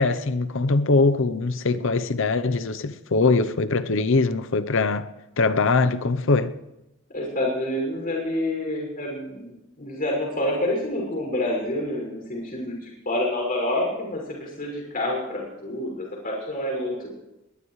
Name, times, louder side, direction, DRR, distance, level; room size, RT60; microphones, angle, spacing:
voice 1, 0.0-5.1 5.4-6.6, left 3 dB, 65° left, 0.7 m, -22 dB
voice 2, 7.1-17.1, left 1 dB, 45° left, 6.0 m, -28 dB
21.0 x 20.0 x 3.2 m
head